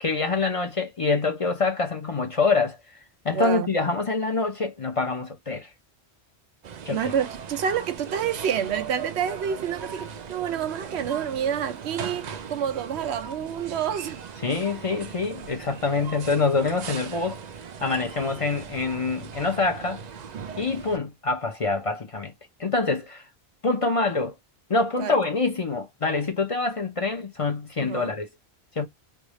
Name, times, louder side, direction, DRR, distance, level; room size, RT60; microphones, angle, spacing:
voice 1, 0.0-2.8 3.2-5.7 6.8-7.1 14.4-17.4 17.8-20.0 20.6-22.3 22.6-23.2 23.6-24.3 24.7-28.3 28.8-28.9, left 3 dB, 40° left, 0.6 m, -25 dB
voice 2, 3.3-3.7 6.9-14.2 25.0-25.1 27.8-28.1, right 8 dB, 90° right, 0.9 m, -28 dB
sound 1, 6.6-21.0, right 7 dB, 55° right, 0.6 m, -38 dB
3.4 x 2.4 x 3.1 m
omnidirectional pair, 1.1 m